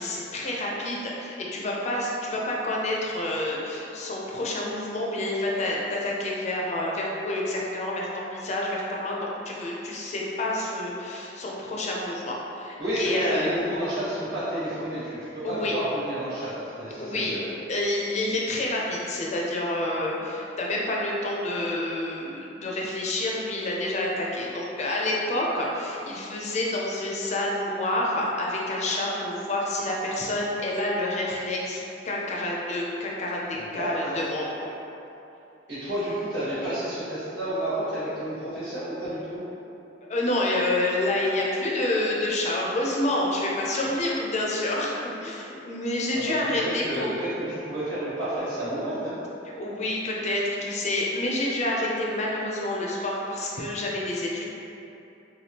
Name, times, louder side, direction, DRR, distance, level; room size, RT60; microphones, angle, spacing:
voice 1, 0.0-13.5 15.4-15.7 17.0-17.4 17.7-34.7 40.1-44.9 45.2-47.1 49.6-54.4, left 1 dB, 40° left, -3 dB, 0.4 m, -28 dB
voice 2, 12.8-17.5 33.6-34.2 35.7-39.4 46.1-46.3 46.6-49.1, right 1 dB, 70° right, -13 dB, 1.4 m, -30 dB
3.3 x 2.2 x 2.8 m, 2.8 s
head